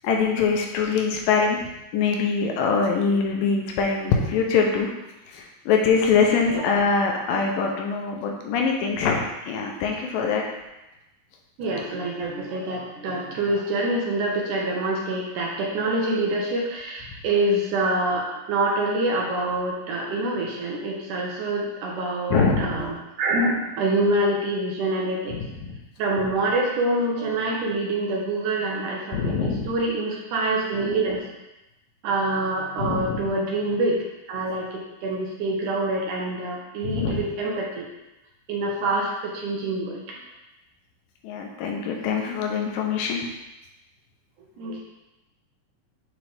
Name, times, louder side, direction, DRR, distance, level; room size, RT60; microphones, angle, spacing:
voice 1, 0.0-1.6 1.9-4.9 5.3-10.4 22.3-22.9 25.3-25.8 29.1-29.7 32.8-33.2 36.8-37.2 41.2-43.2, left 5 dB, 80° left, 1 dB, 2.4 m, -23 dB
voice 2, 6.3-6.7 11.6-25.4 26.0-31.3 32.0-34.0 34.3-37.9 38.5-40.2 44.6-44.8, right 2 dB, 75° right, -2 dB, 2.2 m, -26 dB
9.3 x 3.7 x 3.4 m, 0.99 s
omnidirectional pair, 4.0 m